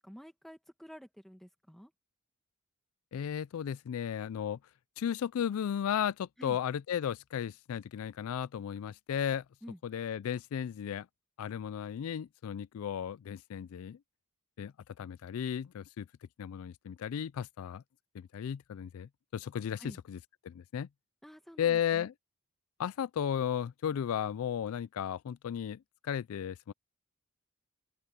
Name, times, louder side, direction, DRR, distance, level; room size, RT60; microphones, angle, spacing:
voice 1, 0.0-1.9 6.4-6.6 9.6-9.8 19.8-20.0 21.2-22.1, equal, ahead, 1.8 m, -50 dB
voice 2, 3.1-4.6 5.0-9.4 9.8-11.1 11.4-14.0 14.6-16.1 16.4-17.8 18.1-20.2 20.4-20.9 21.6-22.1 22.8-26.7, left 9 dB, 80° left, 0.3 m, -35 dB
open air
head